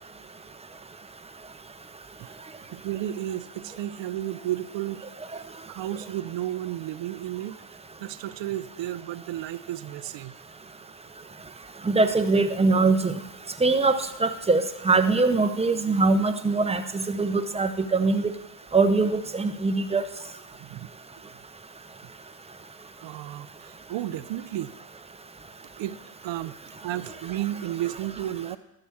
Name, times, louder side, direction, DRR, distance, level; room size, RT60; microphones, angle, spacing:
voice 1, 2.7-5.4 5.7-7.6 8.0-10.4 20.6-20.9 23.0-24.7 25.8-26.0 26.2-26.6 26.8-28.6, right 13 dB, 75° right, 15 dB, 0.7 m, -33 dB
voice 2, 11.9-13.1 13.6-18.3 18.7-20.0, right 3 dB, 15° right, 9 dB, 0.7 m, -22 dB
12.5 x 5.0 x 7.2 m, 0.97 s
cardioid pair, 90°, 45 cm